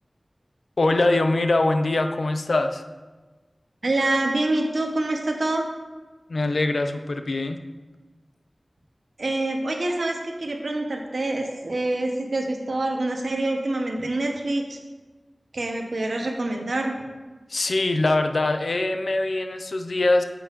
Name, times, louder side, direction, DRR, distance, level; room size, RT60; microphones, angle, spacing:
voice 1, 0.8-2.8 6.3-7.6 17.5-20.2, left 2 dB, 90° left, 7 dB, 0.4 m, -23 dB
voice 2, 3.8-5.7 9.2-14.8 15.5-16.9, right 2 dB, 90° right, 2 dB, 0.9 m, -26 dB
10.0 x 7.1 x 2.5 m, 1.3 s
wide cardioid pair, 65°, 0 cm